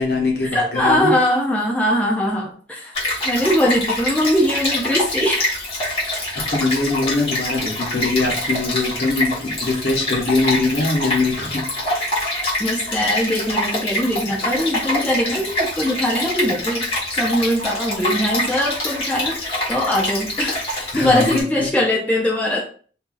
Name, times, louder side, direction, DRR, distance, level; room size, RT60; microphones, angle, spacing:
voice 1, 0.0-1.1 6.5-11.9 20.9-21.7, left 3 dB, 65° left, -1 dB, 1.0 m, -22 dB
voice 2, 0.5-2.9 3.2-5.4 12.6-16.8 17.1-22.6, left 1 dB, 10° left, -3 dB, 0.5 m, -21 dB
Stream, 2.9-21.4, left 1 dB, 35° left, 1.2 m, -25 dB
2.6 x 2.3 x 3.8 m, 0.43 s
head